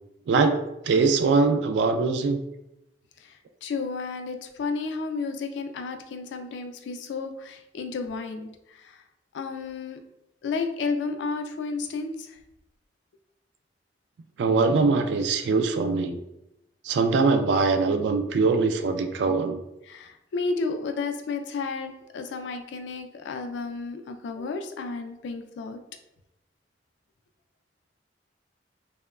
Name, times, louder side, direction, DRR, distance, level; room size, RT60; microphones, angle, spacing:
voice 1, 0.3-0.6 0.8-2.4 14.4-16.2 16.8-19.6, right 4 dB, 80° right, 7 dB, 0.3 m, -22 dB
voice 2, 3.2-9.0 9.3-10.0 10.4-12.4 19.9-25.8, left 4 dB, 90° left, 6 dB, 0.3 m, -32 dB
2.9 x 2.0 x 2.3 m, 0.89 s
head